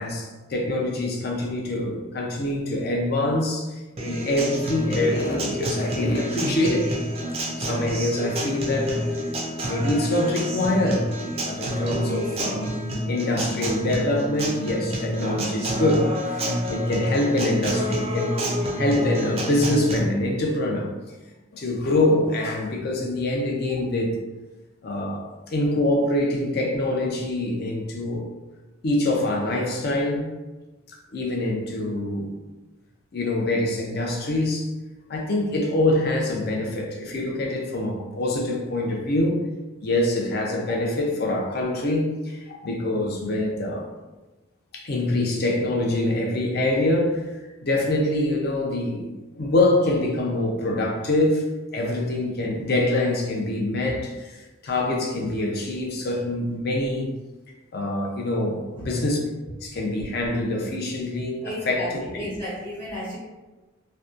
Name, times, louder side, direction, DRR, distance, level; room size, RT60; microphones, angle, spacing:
voice 1, 0.0-3.7 4.0-6.9 7.6-9.0 9.7-11.1 11.4-12.7 13.0-18.4 18.6-20.9 21.5-24.1 24.8-28.3 28.8-30.3 31.1-32.3 33.1-34.7 35.1-39.4 39.8-43.9 44.7-47.3 47.6-49.1 49.3-57.1 57.7-59.2 59.6-62.3, left 1 dB, 50° left, 0 dB, 0.5 m, -25 dB
Acoustic guitar, 4.0-20.0, equal, 30° right, 0.4 m, -28 dB
voice 2, 61.4-63.2, equal, 10° left, -9 dB, 0.7 m, -33 dB
2.7 x 2.2 x 2.4 m, 1.1 s
head